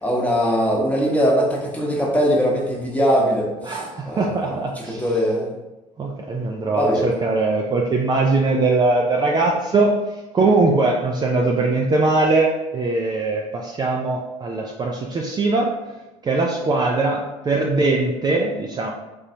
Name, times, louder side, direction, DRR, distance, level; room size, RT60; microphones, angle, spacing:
voice 1, 0.0-5.5 6.7-7.1, equal, 10° left, -2 dB, 1.1 m, -21 dB
voice 2, 3.6-5.1 6.0-10.0 10.3-15.7 16.2-18.9, right 3 dB, 25° right, -1 dB, 0.5 m, -21 dB
3.8 x 3.1 x 2.7 m, 1.1 s
hypercardioid pair, 70°, 17 cm